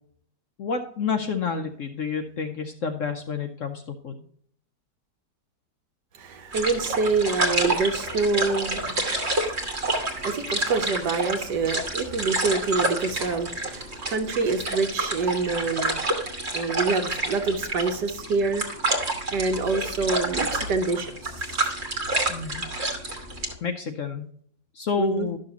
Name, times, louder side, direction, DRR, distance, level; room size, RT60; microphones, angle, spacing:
voice 1, 0.6-4.2 22.3-22.6 23.6-24.3 24.7-25.4, left 6 dB, 65° left, 6 dB, 0.8 m, -29 dB
voice 2, 6.1-16.0 16.5-18.6 19.3-21.6 25.0-25.3, right 4 dB, 70° right, 6 dB, 1.6 m, -27 dB
sound 1, 6.5-23.5, right 2 dB, 40° right, 1.5 m, -29 dB
12.0 x 6.5 x 2.9 m, 0.63 s
omnidirectional pair, 1.9 m